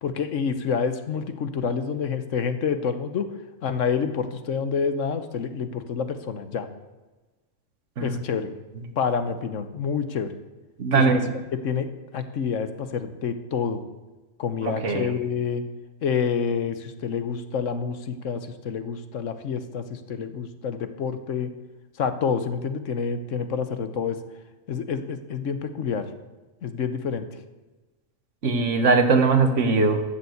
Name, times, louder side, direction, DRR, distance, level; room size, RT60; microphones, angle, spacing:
voice 1, 0.0-3.3 3.6-6.7 8.0-8.5 9.0-10.3 10.9-11.2 11.6-11.9 12.1-13.8 14.4-15.6 16.0-21.5 22.0-24.2 24.7-26.1 26.6-27.2, left 6 dB, 70° left, 10 dB, 1.3 m, -28 dB
voice 2, 10.8-11.3 14.6-15.1 28.4-30.0, right 4 dB, 65° right, 7 dB, 1.6 m, -20 dB
13.0 x 7.1 x 8.0 m, 1.2 s
omnidirectional pair, 1.4 m